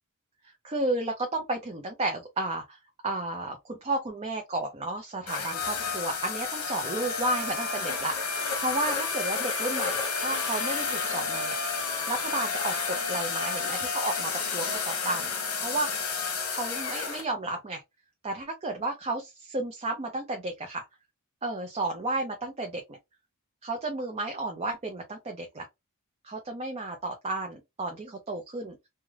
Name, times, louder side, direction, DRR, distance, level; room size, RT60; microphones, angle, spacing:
voice 1, 0.6-2.8 3.0-15.9 16.5-17.8 18.2-20.8 21.4-22.8 23.6-25.7 26.2-28.8, right 2 dB, 25° right, 0.5 m, -32 dB
sound 1, 5.3-17.2, left 5 dB, 70° left, 1.1 m, -31 dB
3.2 x 2.2 x 2.3 m
head